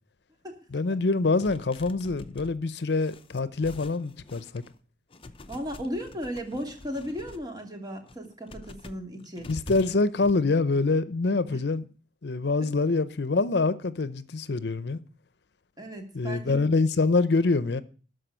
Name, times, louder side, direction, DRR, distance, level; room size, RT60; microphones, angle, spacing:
voice 1, 0.7-4.6 9.5-11.8 12.2-15.0 16.1-17.8, left 3 dB, 70° left, 0.6 m, -25 dB
sound 1, 1.4-4.8 5.1-7.5 7.9-10.3, left 2 dB, 30° left, 0.7 m, -46 dB
voice 2, 5.5-9.5 15.8-16.7, equal, 25° right, 2.7 m, -36 dB
13.0 x 5.0 x 8.9 m
head